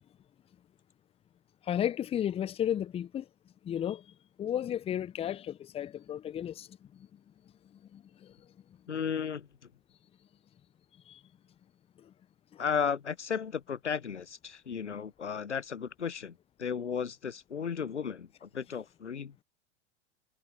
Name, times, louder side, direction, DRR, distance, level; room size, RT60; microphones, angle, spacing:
voice 1, 1.7-3.2 3.6-4.0 4.4-6.7 7.9-8.0 11.1-11.2 12.5-12.6, left 10 dB, 15° left, 0.7 m, -33 dB
voice 2, 8.9-9.7 12.6-19.3, left 7 dB, 90° left, 0.8 m, -34 dB
figure-of-eight pair, 95°, 34 cm